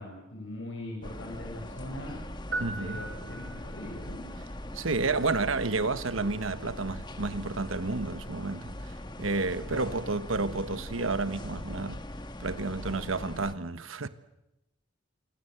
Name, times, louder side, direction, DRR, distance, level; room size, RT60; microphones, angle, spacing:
voice 1, 0.0-2.2 2.8-4.3 9.7-9.9, left 1 dB, 75° left, 7.0 m, -41 dB
sound 1, 1.0-13.5, left 1 dB, 20° left, 1.4 m, -41 dB
sound 2, 2.5-4.0, right 3 dB, 65° right, 3.5 m, -38 dB
voice 2, 2.6-3.1 4.7-12.0 12.4-14.1, right 3 dB, 90° right, 1.3 m, -31 dB
28.0 x 25.0 x 8.0 m
head